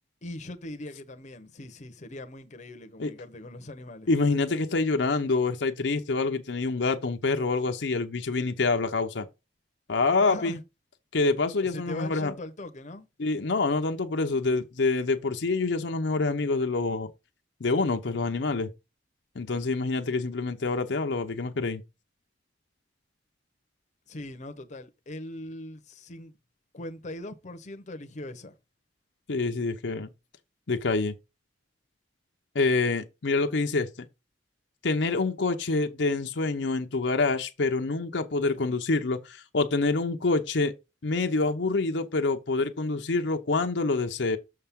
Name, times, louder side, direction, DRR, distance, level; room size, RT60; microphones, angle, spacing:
voice 1, 0.2-4.1 10.2-10.6 11.6-13.1 24.1-26.3 26.7-28.6, left 1 dB, 40° left, 0.8 m, -40 dB
voice 2, 4.1-9.3 9.9-10.6 11.1-12.3 13.2-17.1 17.6-18.7 19.4-21.8 29.3-30.1 30.7-31.1 32.5-34.1 34.8-40.7 41.0-44.4, left 3 dB, 70° left, 0.7 m, -26 dB
6.5 x 5.6 x 3.6 m
head